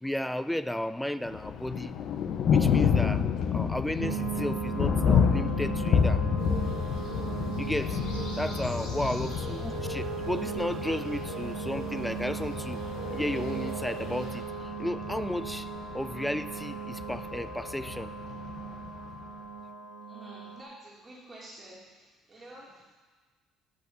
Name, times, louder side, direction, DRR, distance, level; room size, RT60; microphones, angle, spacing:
voice 1, 0.0-2.0 2.5-3.3 3.5-6.3 7.6-12.9 13.1-18.1, left 1 dB, 5° left, 14 dB, 0.3 m, -34 dB
Thunder, 1.3-19.2, left 7 dB, 60° left, 0.6 m, -30 dB
sound 1, 4.0-20.6, right 7 dB, 65° right, 0.8 m, -38 dB
sound 2, 6.4-14.4, left 2 dB, 85° left, 2.4 m, -41 dB
voice 2, 20.1-22.9, right 1 dB, 30° right, -5 dB, 2.3 m, -50 dB
6.4 x 5.9 x 6.7 m, 1.3 s
cardioid pair, 100°, 0 cm